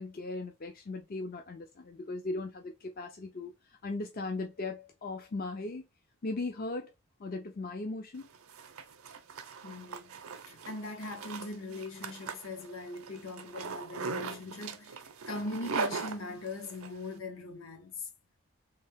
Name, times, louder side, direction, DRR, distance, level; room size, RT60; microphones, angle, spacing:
voice 1, 0.0-3.5 3.8-5.8 6.2-6.9 7.2-8.3, left 2 dB, 45° left, 0.5 m, -38 dB
Zipper (clothing), 8.2-16.9, right 4 dB, 80° right, 0.6 m, -40 dB
voice 2, 9.6-10.2 10.5-15.0 15.3-18.1, left 2 dB, 70° left, 0.9 m, -41 dB
3.3 x 2.7 x 3.4 m
head